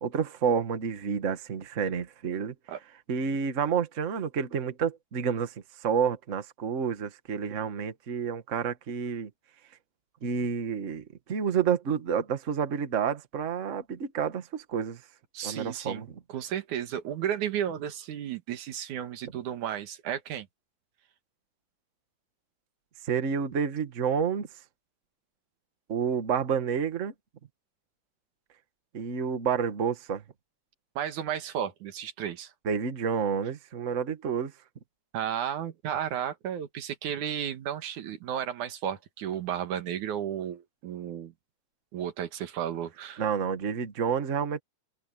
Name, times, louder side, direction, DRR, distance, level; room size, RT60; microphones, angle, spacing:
voice 1, 0.0-2.5 3.1-5.5 5.8-9.3 10.2-15.0 15.4-16.2 23.0-24.5 25.9-27.1 28.9-30.2 32.6-34.5 43.2-44.6, right 6 dB, 35° right, 1.4 m, -29 dB
voice 2, 15.3-20.5 31.0-32.5 35.1-41.3 41.9-43.2, right 9 dB, 90° right, 3.0 m, -33 dB
omnidirectional pair, 3.4 m